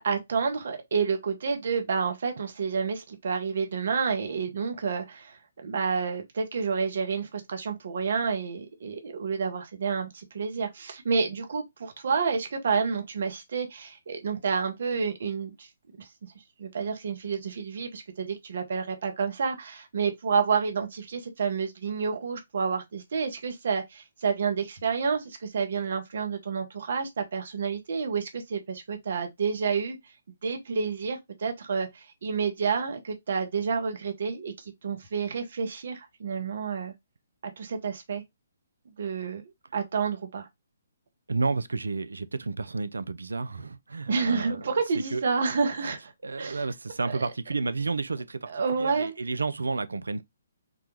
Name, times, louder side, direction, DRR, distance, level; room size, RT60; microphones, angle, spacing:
voice 1, 0.0-15.7 16.0-16.1 16.6-30.0 30.4-34.5 34.8-36.9 37.6-38.2 39.0-39.4 39.7-40.5 44.1-46.1 46.4-46.6 47.1-47.3 48.5-49.1, right 5 dB, 55° right, 0.8 m, -29 dB
voice 2, 41.3-45.2 46.2-50.2, right 3 dB, 75° right, 0.4 m, -31 dB
3.8 x 2.3 x 3.0 m
figure-of-eight pair, 135°, 0 cm